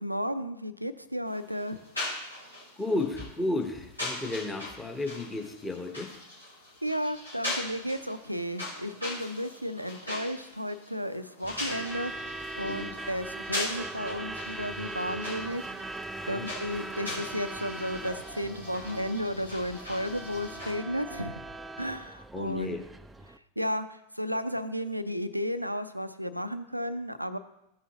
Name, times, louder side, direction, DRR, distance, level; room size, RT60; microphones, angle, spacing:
voice 1, 0.0-1.8 6.8-15.6 16.3-21.3 21.8-22.8 23.6-27.4, equal, 90° right, 12 dB, 0.5 m, -33 dB
sound 1, 1.3-20.7, left 1 dB, 85° left, 2.6 m, -40 dB
voice 2, 2.8-6.1 12.6-12.9 16.2-16.5 22.3-22.8, left 2 dB, 10° left, 3 dB, 1.1 m, -33 dB
Truck / Alarm, 11.4-23.4, right 2 dB, 10° right, 0.4 m, -40 dB
14.5 x 5.7 x 2.9 m, 0.85 s
figure-of-eight pair, 90°, 0 cm